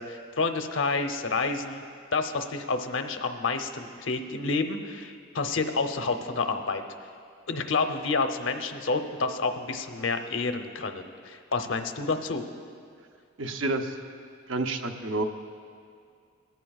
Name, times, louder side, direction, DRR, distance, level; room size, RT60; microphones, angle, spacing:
voice 1, 0.0-1.8 2.1-6.8 7.5-12.4, left 4 dB, 70° left, 7 dB, 0.8 m, -29 dB
voice 2, 13.4-14.0 14.5-15.2, right 2 dB, 70° right, 6 dB, 0.8 m, -29 dB
19.5 x 14.0 x 2.4 m, 2.2 s
head